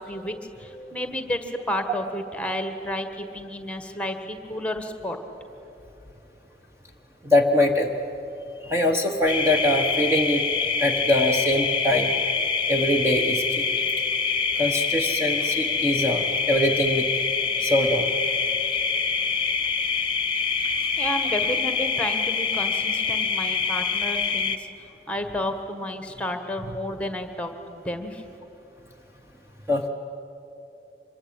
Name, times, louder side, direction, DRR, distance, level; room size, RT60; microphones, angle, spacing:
voice 1, 0.0-5.2 21.0-24.6 25.1-28.2, left 1 dB, 5° left, 7 dB, 1.6 m, -31 dB
voice 2, 7.2-7.9 8.6-10.4 10.8-12.1 12.7-13.6 14.6-17.1 17.6-18.6 29.7-29.9, left 1 dB, 15° right, 2 dB, 1.2 m, -23 dB
sound 1, 9.3-24.6, left 5 dB, 30° left, 1.1 m, -25 dB
25.5 x 23.0 x 9.0 m, 2.9 s
head